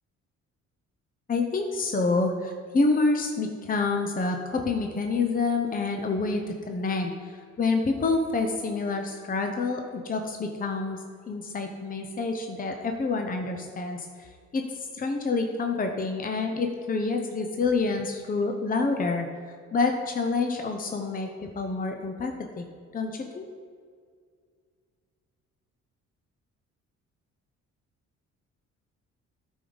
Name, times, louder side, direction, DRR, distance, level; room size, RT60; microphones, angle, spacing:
voice 1, 1.3-11.0 11.3-14.6 14.9-19.3 19.7-22.6 22.9-23.5, left 3 dB, 30° left, 4 dB, 0.8 m, -27 dB
12.0 x 5.2 x 4.0 m, 2.1 s
cardioid pair, 90°, 30 cm